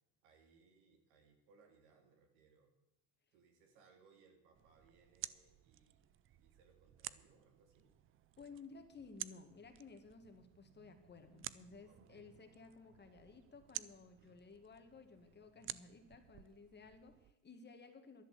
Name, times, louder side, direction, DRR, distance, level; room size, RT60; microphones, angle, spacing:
voice 1, 0.2-2.7 3.3-7.9 8.4-8.6 11.9-12.4 13.7-13.8 14.2-14.4, right 5 dB, 85° right, 4 dB, 3.1 m, -69 dB
sound 1, 4.5-17.3, right 13 dB, 30° right, 0.4 m, -53 dB
voice 2, 8.4-18.2, left 4 dB, 25° left, 6 dB, 1.7 m, -57 dB
11.5 x 11.0 x 7.5 m, 0.93 s
cardioid pair, 125°, 43 cm